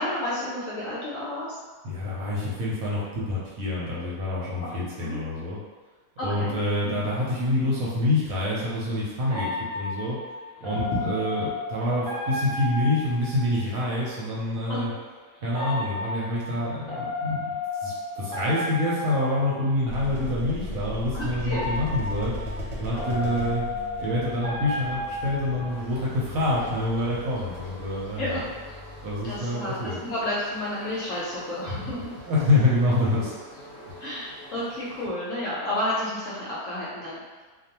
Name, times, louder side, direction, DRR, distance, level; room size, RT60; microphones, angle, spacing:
voice 1, 0.0-1.6 5.0-5.2 6.2-6.6 6.8-7.0 10.7-11.0 14.7-14.8 21.1-21.7 28.2-28.4 29.2-32.1 34.0-37.2, left 1 dB, 65° left, -7 dB, 0.8 m, -31 dB
voice 2, 1.8-5.6 6.2-10.2 10.6-14.9 15.4-22.4 22.8-23.7 24.0-28.4 29.0-30.0 32.3-33.3, left 1 dB, 65° right, -7 dB, 1.0 m, -26 dB
sound 1, 9.3-13.9 15.5-20.1 21.4-26.1, left 2 dB, 5° left, 0.3 m, -33 dB
sound 2, 19.9-29.4, left 2 dB, 85° right, 1.3 m, -37 dB
sound 3, 25.7-35.1, equal, 30° left, 1.0 m, -46 dB
2.5 x 2.3 x 2.8 m, 1.3 s
omnidirectional pair, 1.8 m